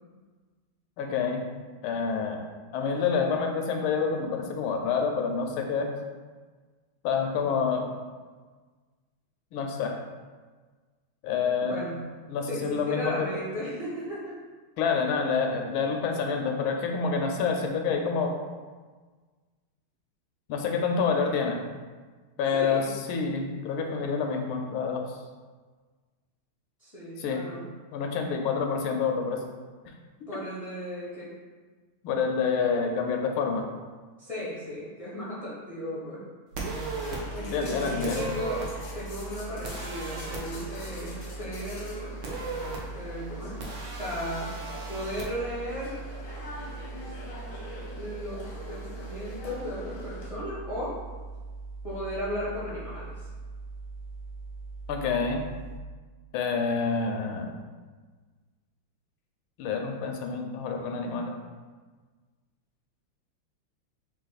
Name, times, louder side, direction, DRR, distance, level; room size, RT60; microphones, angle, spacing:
voice 1, 1.0-1.4 1.8-2.4 2.7-5.9 7.0-7.9 9.5-10.0 11.2-11.8 12.3-13.3 14.8-18.3 20.5-21.6 22.4-25.0 27.2-27.4 27.9-29.4 32.0-33.7 37.5-38.3 54.9-55.4 56.3-57.5 59.6-61.4, left 5 dB, 80° left, 3 dB, 1.4 m, -27 dB
voice 2, 11.6-12.0 12.5-14.4 22.5-23.0 26.8-27.7 30.3-31.3 34.2-36.3 37.3-42.2 42.7-43.7 44.0-44.5 44.9-46.0 47.9-50.9 51.8-53.3, left 1 dB, 35° left, -9 dB, 0.5 m, -36 dB
sound 1, 36.5-55.8, right 3 dB, 55° right, 1.7 m, -41 dB
sound 2, 36.5-37.2 38.0-38.7 39.6-40.4 42.2-42.8 43.6-45.2, right 3 dB, 70° right, 0.7 m, -36 dB
sound 3, 37.0-50.3, left 1 dB, 55° left, 0.9 m, -44 dB
4.1 x 2.8 x 4.0 m, 1.4 s
omnidirectional pair, 2.3 m